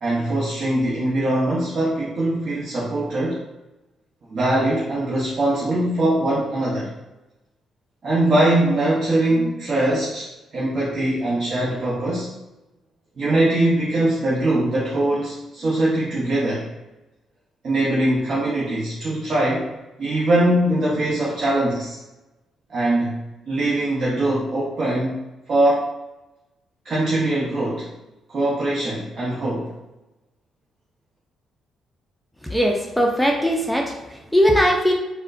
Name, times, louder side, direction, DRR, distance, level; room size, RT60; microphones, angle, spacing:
voice 1, 0.0-3.4 4.3-6.9 8.0-12.3 13.2-16.7 17.6-19.7 20.0-22.0 22.7-23.1 23.5-25.2 25.5-25.9 26.8-27.9 28.3-29.7, right 1 dB, 50° right, -7 dB, 0.8 m, -22 dB
voice 2, 32.4-34.9, equal, 5° left, 1 dB, 0.4 m, -20 dB
4.2 x 2.1 x 2.5 m, 1.0 s
cardioid pair, 90°, 0 cm